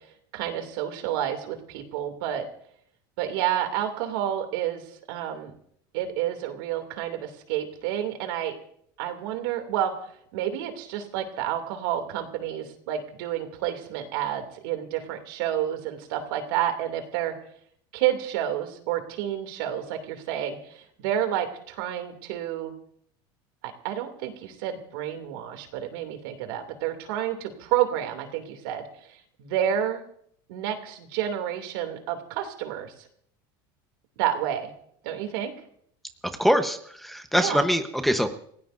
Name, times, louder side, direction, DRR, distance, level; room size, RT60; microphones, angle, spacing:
voice 1, 0.3-2.4 3.2-4.8 5.1-5.5 5.9-8.5 9.0-9.9 10.3-17.3 17.9-22.7 23.8-28.8 29.4-30.0 30.5-32.9 34.2-34.7 35.0-35.5 37.3-37.7, right 11 dB, 80° right, 6 dB, 2.7 m, -29 dB
voice 2, 36.4-38.4, equal, ahead, 6 dB, 1.0 m, -23 dB
28.5 x 17.0 x 2.7 m, 0.66 s
supercardioid pair, 130°, 11 cm